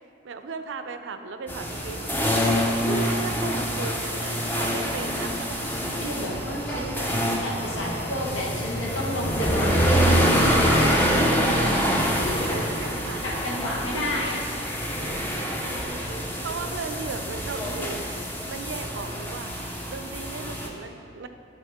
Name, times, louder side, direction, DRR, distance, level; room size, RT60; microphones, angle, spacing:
voice 1, 0.2-2.1 2.9-5.7 6.7-7.2 11.3-13.2 13.9-14.0 15.4-16.0 16.4-18.1 18.5-19.5 19.9-21.3, right 4 dB, 70° right, 8 dB, 0.4 m, -36 dB
sound 1, 1.5-20.7, equal, 10° left, 0.5 m, -26 dB
voice 2, 6.0-6.9 7.4-11.3 12.1-12.6 13.2-14.4, left 1 dB, 85° left, -4 dB, 1.3 m, -31 dB
9.8 x 4.0 x 3.5 m, 2.6 s
head